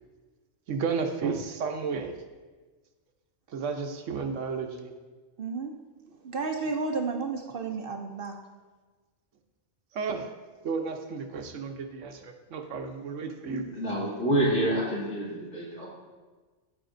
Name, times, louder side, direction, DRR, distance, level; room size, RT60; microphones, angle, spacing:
voice 1, 0.7-2.2 3.5-4.9 9.9-10.3 10.6-13.6, right 5 dB, 75° right, 6 dB, 1.1 m, -32 dB
voice 2, 5.4-5.8 6.2-8.4, right 4 dB, 55° right, 4 dB, 0.7 m, -32 dB
voice 3, 13.5-15.9, right 1 dB, 80° left, -6 dB, 2.7 m, -28 dB
14.5 x 5.1 x 2.6 m, 1.3 s
omnidirectional pair, 1.3 m